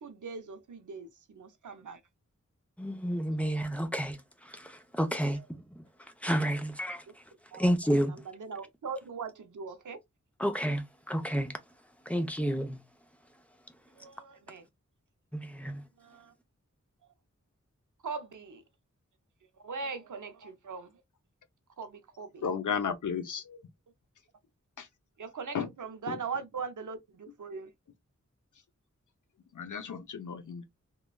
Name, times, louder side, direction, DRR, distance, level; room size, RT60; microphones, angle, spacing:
voice 1, 0.0-2.0 5.3-5.4 7.1-7.2 7.5-7.6 8.0-10.0 14.0-14.6 15.6-16.3 18.0-18.6 19.6-20.9 21.8-22.4 25.2-27.7, right 5 dB, 85° right, 0.6 m, -40 dB
voice 2, 2.8-4.2 4.5-5.4 6.2-7.0 7.5-8.1 10.4-11.5 12.1-12.8 15.4-15.8, equal, 5° left, 0.6 m, -30 dB
voice 3, 22.4-23.7 24.8-24.9 25.5-25.7 26.1-26.2 29.5-30.6, left 7 dB, 85° left, 0.6 m, -34 dB
3.2 x 2.2 x 2.2 m
wide cardioid pair, 70°, 30 cm